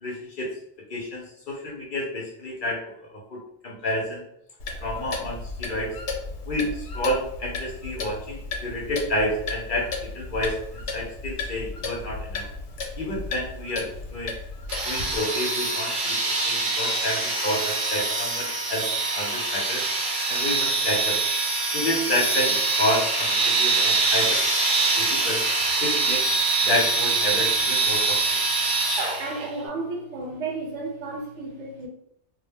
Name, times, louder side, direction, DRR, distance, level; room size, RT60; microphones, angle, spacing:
voice 1, 0.0-0.5 0.9-3.4 3.6-4.2 4.8-5.9 6.5-10.6 10.9-12.4 13.0-14.4 14.8-19.8 20.3-21.2 21.7-24.4 24.9-25.4 25.8-26.3 26.6-28.2, left 1 dB, 55° left, 0.7 m, -29 dB
Clock, 4.6-15.2, left 3 dB, 80° left, 0.9 m, -34 dB
sound 1, 14.7-29.4, right 3 dB, 55° right, 0.7 m, -24 dB
voice 2, 29.2-31.9, right 3 dB, 85° right, 1.0 m, -33 dB
2.2 x 2.1 x 3.4 m
omnidirectional pair, 1.2 m